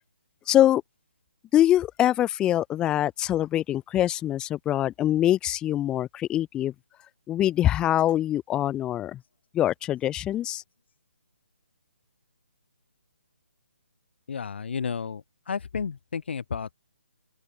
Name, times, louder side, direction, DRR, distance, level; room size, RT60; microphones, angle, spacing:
voice 1, 0.5-0.8 1.5-6.7 7.3-9.2 9.5-10.6, left 12 dB, 10° left, 2.3 m, -24 dB
voice 2, 14.3-15.2 15.5-16.7, left 6 dB, 55° left, 5.2 m, -32 dB
open air
hypercardioid pair, 160°, 7 cm